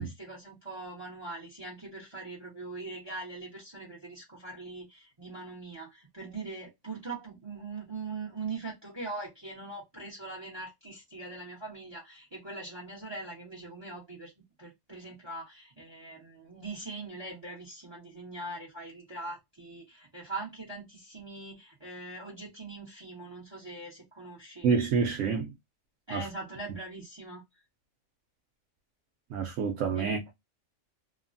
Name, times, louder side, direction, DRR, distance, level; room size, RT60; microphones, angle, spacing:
voice 1, 0.0-14.3 14.6-24.7 26.1-27.4 29.9-30.2, right 3 dB, 25° right, 1.0 m, -42 dB
voice 2, 24.6-25.5 26.1-26.3 29.3-30.3, right 5 dB, 75° right, 1.0 m, -28 dB
3.2 x 2.1 x 2.5 m
omnidirectional pair, 1.3 m